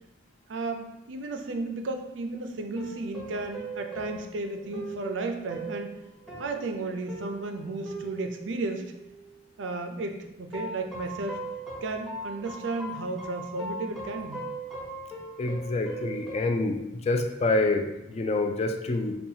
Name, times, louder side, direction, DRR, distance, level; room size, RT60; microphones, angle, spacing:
voice 1, 0.5-5.9 6.4-8.9 9.6-11.4 11.8-14.4, right 3 dB, 75° right, 5 dB, 0.4 m, -33 dB
sound 1, 2.8-9.4 10.5-16.6, right 2 dB, ahead, 0.8 m, -40 dB
voice 2, 15.4-16.8 17.1-19.1, left 2 dB, 35° left, 5 dB, 0.3 m, -27 dB
5.4 x 2.3 x 2.7 m, 0.91 s
head